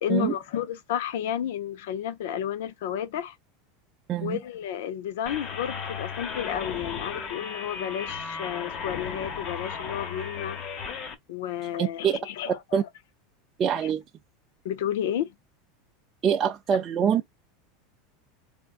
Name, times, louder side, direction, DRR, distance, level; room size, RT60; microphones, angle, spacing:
voice 1, 0.0-3.4 4.2-10.6 11.3-12.6 14.6-15.3, left 10 dB, 75° left, 0.6 m, -31 dB
voice 2, 4.1-4.4 11.8-12.2 12.7-12.8 13.6-14.0 16.2-17.3, right 8 dB, 30° right, 0.4 m, -24 dB
sound 1, 5.3-11.1, left 6 dB, 40° left, 1.0 m, -35 dB
3.6 x 3.5 x 2.5 m
supercardioid pair, 130°, 0 cm